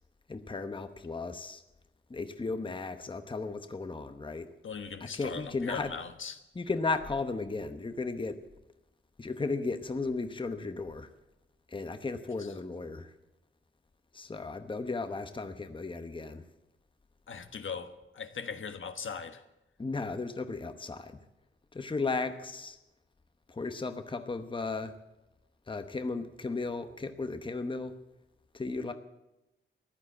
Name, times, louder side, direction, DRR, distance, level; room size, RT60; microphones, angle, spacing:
voice 1, 0.3-1.6 2.1-4.5 5.1-5.9 6.6-8.4 9.2-11.1 11.7-13.1 14.1-16.4 19.8-21.2 21.7-22.8 23.5-24.9 25.7-28.0 28.5-28.9, left 3 dB, 25° left, 0.9 m, -35 dB
voice 2, 4.6-6.4 12.4-12.5 17.3-19.4, left 6 dB, 70° left, 1.3 m, -39 dB
15.0 x 11.5 x 7.8 m
wide cardioid pair, 135°, 21 cm